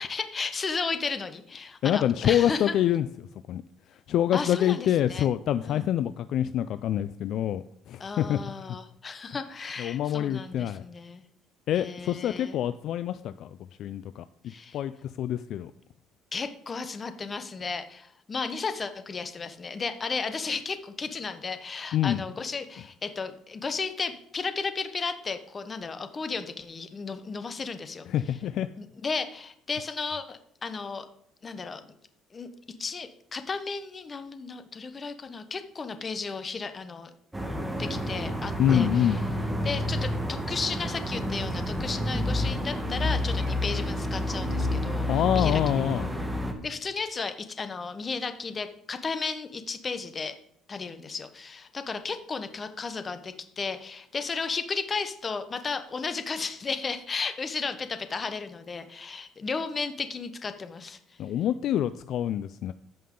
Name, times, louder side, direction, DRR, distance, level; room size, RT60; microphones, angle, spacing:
voice 1, 0.0-2.8 4.3-5.3 5.6-5.9 8.0-11.2 11.7-12.6 14.5-14.8 16.3-28.1 28.8-31.1 31.4-31.9 32.3-32.5 32.8-37.1 37.8-39.2 39.6-45.1 45.3-45.6 46.6-50.4 50.7-61.0, left 4 dB, 30° left, 10 dB, 1.0 m, -34 dB
voice 2, 1.8-3.1 3.5-3.6 4.1-8.8 9.8-10.8 11.7-15.7 21.9-22.2 28.1-28.7 38.6-39.2 45.1-46.1 61.2-62.7, left 11 dB, 60° left, 13 dB, 0.3 m, -26 dB
sound 1, 37.3-46.5, left 1 dB, 10° right, 1.4 m, -29 dB
14.0 x 5.6 x 3.8 m, 0.69 s
cardioid pair, 115°, 0 cm